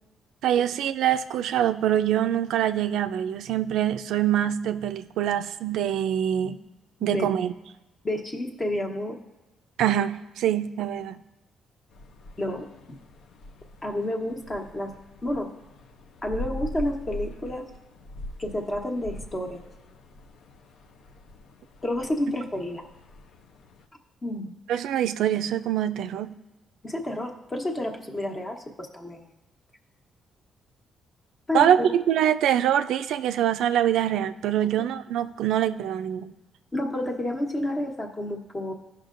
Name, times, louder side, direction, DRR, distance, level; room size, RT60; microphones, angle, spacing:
voice 1, 0.4-6.6 7.0-7.5 9.8-11.2 24.7-26.3 31.5-36.3, right 10 dB, 85° right, 10 dB, 0.3 m, -24 dB
voice 2, 8.0-9.2 12.4-12.7 13.8-14.9 15.2-15.5 16.2-17.7 18.4-19.6 21.8-22.8 24.2-24.5 26.8-29.3 31.5-31.9 36.7-38.7, left 1 dB, 30° left, 2 dB, 1.1 m, -30 dB
sound 1, 11.9-23.9, left 1 dB, 70° left, 0.6 m, -42 dB
14.0 x 5.6 x 2.5 m, 0.99 s
cardioid pair, 90°, 0 cm